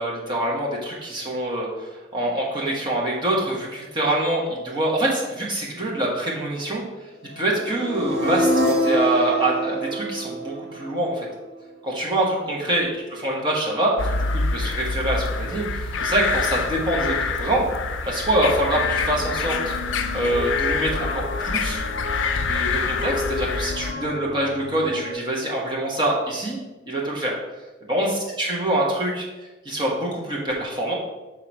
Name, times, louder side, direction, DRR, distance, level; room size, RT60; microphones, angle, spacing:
voice 1, 0.0-6.8 7.4-11.3 11.8-17.7 18.0-19.7 20.1-21.8 22.5-26.6 26.9-27.3 27.9-29.2 29.6-30.9, right 1 dB, 25° right, -4 dB, 1.3 m, -25 dB
sound 1, 7.5-11.5, right 1 dB, 55° right, 1.5 m, -25 dB
sound 2, 14.0-23.9, left 4 dB, 75° left, 0.4 m, -26 dB
sound 3, 18.7-25.1, left 3 dB, 60° left, 1.0 m, -33 dB
5.8 x 3.8 x 4.6 m, 1.1 s
head